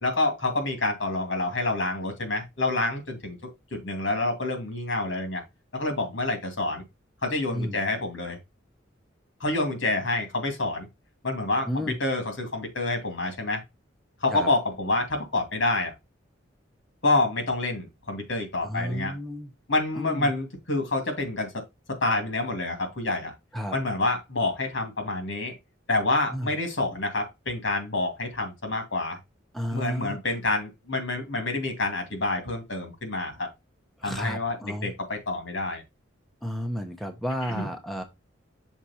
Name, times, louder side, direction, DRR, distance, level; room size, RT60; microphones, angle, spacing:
voice 1, 0.0-3.4 3.7-5.4 5.7-6.8 7.2-8.4 9.4-10.9 11.2-13.6 14.2-15.9 17.0-19.1 19.7-21.6 21.9-23.3 23.7-25.6 25.9-29.2 29.7-33.5 34.0-35.8 37.4-37.7, left 2 dB, 75° left, 2.4 m, -28 dB
voice 2, 11.7-12.0 14.3-14.5 18.6-19.5 19.9-20.3 23.5-23.8 26.3-26.5 29.5-30.2 34.0-34.9 36.4-38.0, equal, ahead, 0.8 m, -32 dB
6.2 x 4.1 x 4.2 m
head